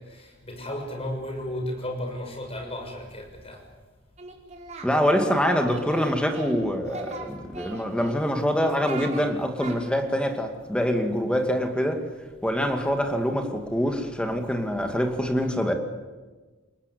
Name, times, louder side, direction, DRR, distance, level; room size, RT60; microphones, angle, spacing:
voice 1, 0.0-3.7, left 1 dB, 30° left, 6.6 m, -34 dB
Singing, 4.2-4.9 5.2-6.6 6.9-8.2 8.6-9.3 9.6-9.8, right 3 dB, 35° right, 4.6 m, -38 dB
voice 2, 4.8-12.0 12.4-15.7, equal, 5° left, 2.5 m, -25 dB
29.0 x 19.5 x 8.5 m
head